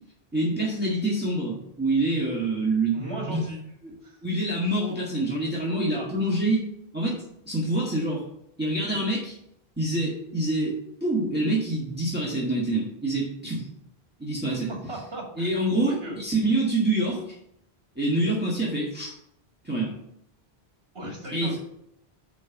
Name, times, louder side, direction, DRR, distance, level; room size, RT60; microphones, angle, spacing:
voice 1, 0.3-3.4 3.8-3.9 4.2-6.7 6.9-8.2 8.6-9.3 9.8-13.7 14.2-14.7 15.4-17.3 18.0-19.1 19.6-19.9 21.3-21.6, right 2 dB, 10° right, -5 dB, 1.7 m, -26 dB
voice 2, 2.9-3.6 4.0-4.2 5.9-6.1 14.5-15.5 15.9-16.2 20.9-21.6, right 1 dB, 70° right, -1 dB, 2.5 m, -37 dB
6.2 x 5.4 x 7.0 m, 0.78 s
omnidirectional pair, 1.1 m